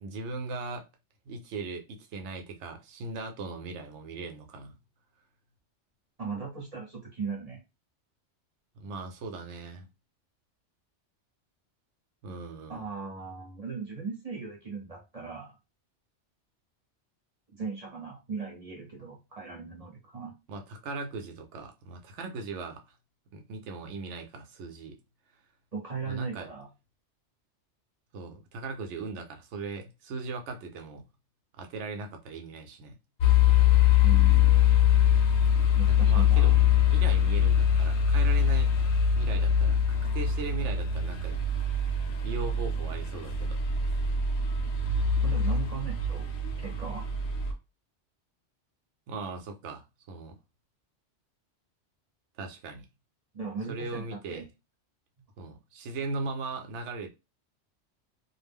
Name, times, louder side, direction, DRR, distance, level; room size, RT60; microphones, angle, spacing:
voice 1, 0.0-0.9 1.3-4.8 8.8-9.9 12.2-12.8 20.5-22.9 23.3-25.0 26.0-26.5 28.1-31.0 31.6-33.0 35.9-38.9 39.1-41.4 41.9-43.6 49.1-50.4 52.4-52.9 53.7-54.5 55.4-57.1, right 3 dB, 75° right, 0.9 m, -39 dB
voice 2, 6.2-7.6 12.7-15.6 17.5-20.3 25.7-26.7 34.0-34.6 35.8-36.6 45.2-46.3 46.6-47.0 53.3-54.5, right 5 dB, 35° right, 0.8 m, -38 dB
sound 1, 33.2-47.5, left 7 dB, 75° left, 0.9 m, -23 dB
2.4 x 2.0 x 3.4 m
omnidirectional pair, 1.2 m